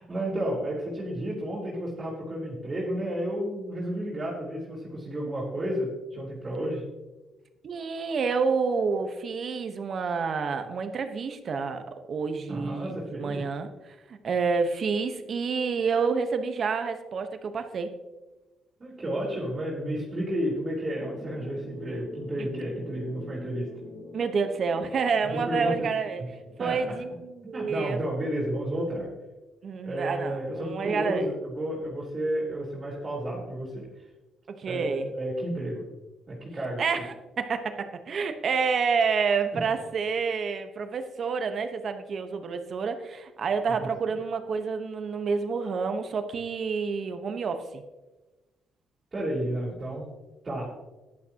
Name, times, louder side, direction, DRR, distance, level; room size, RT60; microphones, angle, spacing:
voice 1, 0.0-6.8 12.5-13.4 18.8-23.7 25.2-25.9 26.6-27.0 27.5-29.1 29.8-33.8 34.7-35.8 36.3-37.1 39.5-39.6 43.8-43.9 49.1-50.1 50.4-50.7, right 1 dB, 30° right, -7 dB, 4.0 m, -32 dB
voice 2, 7.6-12.9 13.2-17.9 22.4-22.5 24.1-26.2 26.6-28.0 29.6-31.3 34.5-35.1 36.8-47.8, right 5 dB, 55° right, 8 dB, 1.2 m, -29 dB
sound 1, 21.0-27.2, left 2 dB, 55° left, 1.6 m, -44 dB
14.5 x 11.0 x 3.0 m, 1.1 s
cardioid pair, 90°, 0 cm